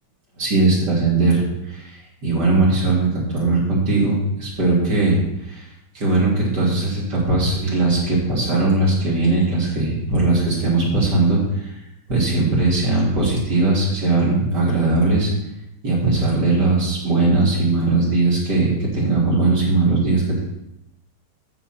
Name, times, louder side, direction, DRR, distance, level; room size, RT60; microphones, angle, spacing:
voice 1, 0.4-5.7 5.9-11.7 12.1-15.3 15.8-20.4, right 3 dB, 70° right, -6 dB, 3.8 m, -19 dB
9.2 x 7.0 x 4.4 m, 0.84 s
omnidirectional pair, 1.9 m